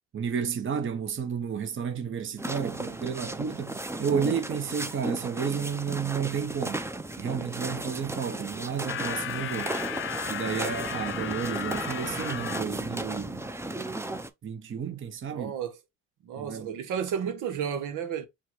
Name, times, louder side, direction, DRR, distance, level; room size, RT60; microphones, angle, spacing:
voice 1, 0.1-6.8 7.2-9.8 10.3-13.5 14.4-15.5 16.4-16.7, right 7 dB, 40° right, 0.9 m, -32 dB
sound 1, 2.4-14.3, right 2 dB, 10° right, 0.6 m, -35 dB
sound 2, 8.9-12.6, left 10 dB, 45° left, 0.4 m, -35 dB
voice 2, 15.3-15.8 16.2-18.3, right 8 dB, 85° right, 1.1 m, -32 dB
4.6 x 2.3 x 4.4 m
cardioid pair, 90°, 30 cm